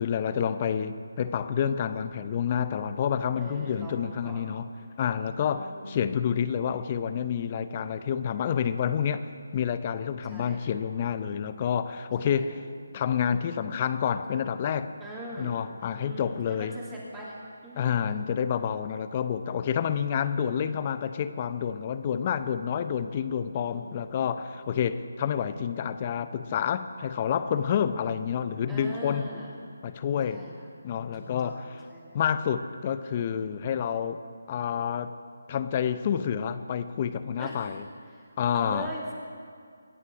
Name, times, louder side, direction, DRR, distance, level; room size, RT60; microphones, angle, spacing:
voice 1, 0.0-4.7 5.0-9.3 9.5-12.6 12.9-14.9 15.4-16.7 17.8-29.3 29.8-30.4 30.8-31.8 32.1-34.2 34.5-35.1 35.5-37.8 38.4-38.9, left 8 dB, 30° left, 12 dB, 0.7 m, -28 dB
voice 2, 3.4-4.4 5.4-5.9 10.2-10.6 12.2-12.5 15.0-15.6 16.0-17.3 17.6-18.0 23.5-24.1 28.7-29.5 30.3-30.7 31.4-31.6 31.9-32.2 37.4-37.7 38.1-39.1, right 1 dB, 10° right, -6 dB, 2.6 m, -41 dB
25.0 x 9.8 x 5.0 m, 2.2 s
figure-of-eight pair, 155°, 0 cm